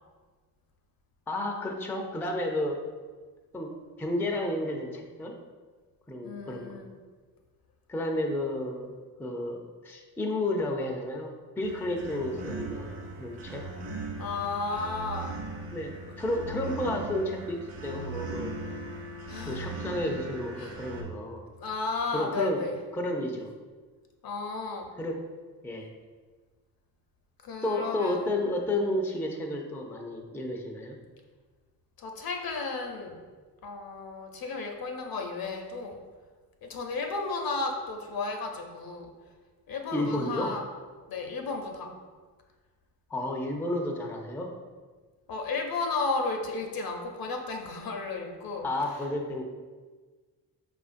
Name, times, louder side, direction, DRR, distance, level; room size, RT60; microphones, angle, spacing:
voice 1, 1.3-2.8 3.5-5.4 6.1-6.8 7.9-8.9 9.2-13.7 15.7-18.8 19.4-21.4 22.1-22.6 22.9-23.5 25.0-25.2 25.6-25.9 27.6-31.0 39.9-40.5 43.1-44.5 48.6-49.4, left 1 dB, 5° left, 1 dB, 0.4 m, -32 dB
voice 2, 6.2-6.9 14.2-15.3 19.3-19.7 20.6-20.8 21.6-22.8 24.2-24.9 27.4-28.2 32.0-33.1 33.6-36.0 36.6-39.1 39.7-40.6 41.1-41.9 45.3-48.6, left 3 dB, 55° left, 3 dB, 0.7 m, -33 dB
sound 1, 11.6-21.0, right 2 dB, 75° right, 0.7 m, -39 dB
4.8 x 2.5 x 2.5 m, 1.4 s
supercardioid pair, 50°, 44 cm